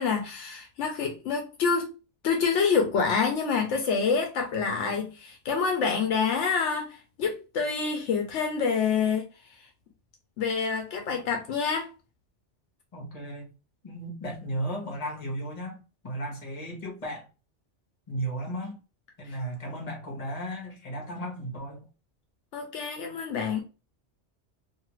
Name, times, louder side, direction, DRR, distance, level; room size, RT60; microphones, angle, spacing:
voice 1, 0.0-2.0 2.2-9.3 10.4-11.9 22.5-23.6, left 5 dB, 75° left, 0.9 m, -27 dB
voice 2, 12.9-13.5 13.8-17.3 18.1-18.8 19.2-21.8, right 1 dB, 35° left, 1.0 m, -35 dB
2.7 x 2.3 x 3.0 m
omnidirectional pair, 1.2 m